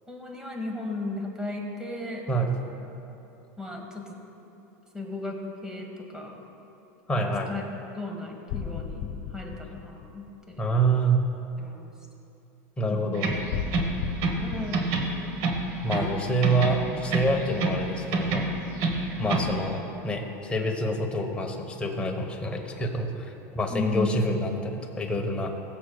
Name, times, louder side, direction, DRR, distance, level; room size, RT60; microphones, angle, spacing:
voice 1, 0.1-2.2 3.6-4.1 4.9-6.3 7.1-7.6 7.9-10.7 11.6-11.9 12.9-13.2 14.4-14.9 16.1-16.3 19.2-19.5 23.7-24.1, left 2 dB, 10° right, 1 dB, 1.4 m, -35 dB
voice 2, 7.1-7.5 10.6-11.3 12.8-13.3 15.8-18.5 19.2-25.5, right 2 dB, 15° left, 2 dB, 1.0 m, -27 dB
sound 1, 8.5-10.8 13.5-16.0, left 7 dB, 55° left, 1.4 m, -35 dB
sound 2, 13.1-14.5 14.7-16.2 16.4-17.8 18.1-19.5, right 3 dB, 60° right, 1.2 m, -27 dB
21.0 x 7.3 x 2.3 m, 2.9 s
supercardioid pair, 135°, 8 cm